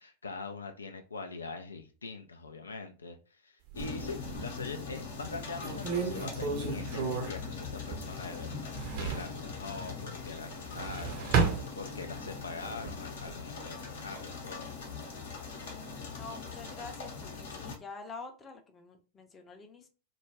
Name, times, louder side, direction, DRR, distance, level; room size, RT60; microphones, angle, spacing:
voice 1, 0.0-11.4 11.8-14.7, left 3 dB, 75° left, 0.3 m, -43 dB
sound 1, 3.7-17.8, left 5 dB, 60° left, 0.7 m, -41 dB
Closing and opening a drawer, 3.7-4.6 5.2-5.3 5.6-8.3 8.5-9.4 10.5-12.3 12.7-13.4, right 5 dB, 45° right, 0.6 m, -33 dB
voice 2, 16.0-19.9, left 4 dB, 20° left, 0.5 m, -47 dB
2.2 x 2.1 x 3.2 m
figure-of-eight pair, 90°, 0 cm